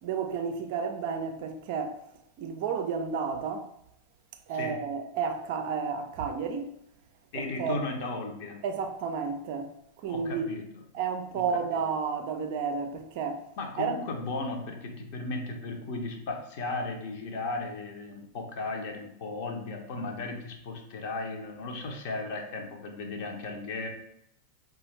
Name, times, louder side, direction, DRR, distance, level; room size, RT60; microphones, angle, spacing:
voice 1, 0.0-2.1 2.4-3.7 4.5-6.7 7.3-7.8 8.6-9.7 10.0-10.5 10.9-13.4 13.8-14.0, right 6 dB, 50° right, 0.4 m, -31 dB
voice 2, 4.5-4.8 7.3-8.6 10.1-10.8 11.3-11.4 11.7-11.8 13.6-23.9, left 3 dB, 50° left, 0.7 m, -36 dB
4.7 x 2.4 x 3.1 m
figure-of-eight pair, 90°, 0 cm